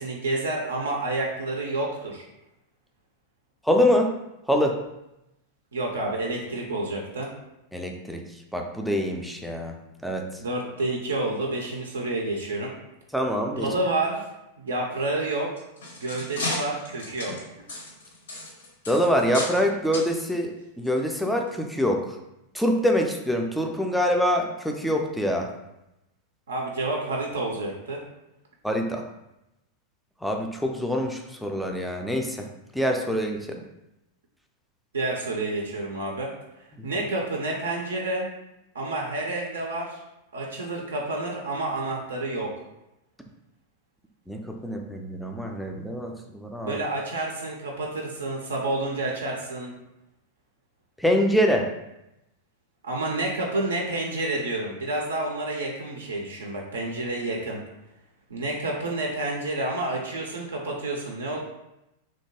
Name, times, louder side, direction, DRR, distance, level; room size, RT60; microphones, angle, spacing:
voice 1, 0.0-2.2 5.7-7.3 10.4-12.7 13.5-14.2 14.6-15.5 16.0-17.3 26.5-28.0 34.9-36.3 36.8-38.3 38.7-40.0 40.3-42.5 46.6-49.7 52.8-57.6 58.3-61.4, right 2 dB, 70° right, 0 dB, 0.4 m, -29 dB
voice 2, 3.6-4.1 4.5-4.8 7.7-8.2 8.5-10.4 13.1-13.7 18.9-22.2 22.5-25.5 28.6-29.0 30.2-32.5 32.7-33.6 36.8-36.9 44.3-46.8 51.0-51.7, equal, ahead, 2 dB, 0.3 m, -25 dB
sound 1, 15.4-19.6 19.9-20.1 20.8-21.0 21.5-21.6, left 2 dB, 65° left, 0.6 m, -35 dB
2.7 x 2.2 x 2.8 m, 0.90 s
figure-of-eight pair, 90°, 0 cm